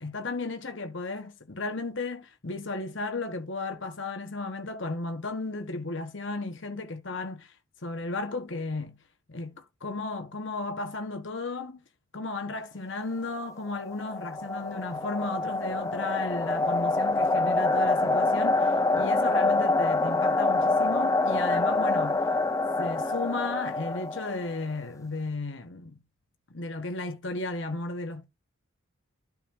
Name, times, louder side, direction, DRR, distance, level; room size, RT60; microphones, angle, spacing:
voice 1, 0.0-7.5 7.8-9.0 9.3-11.8 12.1-22.2 22.8-26.0 26.5-28.2, left 3 dB, 60° left, 1.3 m, -34 dB
sound 1, 13.7-24.6, left 2 dB, 15° left, 0.4 m, -26 dB
12.0 x 5.3 x 2.7 m
head